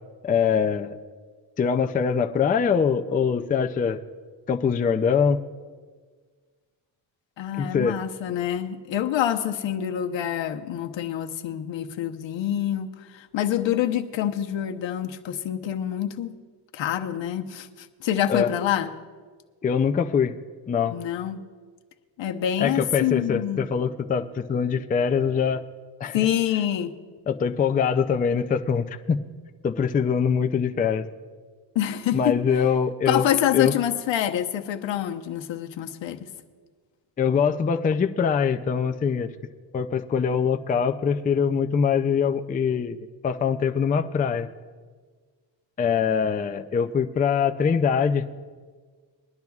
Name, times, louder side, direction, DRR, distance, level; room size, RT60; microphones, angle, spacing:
voice 1, 0.2-1.0 1.6-4.0 4.5-5.4 7.6-8.0 18.3-18.5 19.6-20.3 20.7-21.0 22.6-25.6 26.0-26.2 27.3-29.2 29.6-31.1 32.1-33.2 33.5-33.7 37.2-39.3 39.7-43.0 43.2-44.5 45.8-48.2, left 6 dB, 20° left, 7 dB, 0.4 m, -23 dB
voice 2, 7.4-16.3 16.7-18.9 20.9-21.4 22.2-23.7 26.1-26.9 31.7-32.4 33.1-36.3, left 10 dB, 75° left, 6 dB, 1.0 m, -26 dB
21.5 x 12.0 x 2.4 m, 1.5 s
cardioid pair, 110°, 45 cm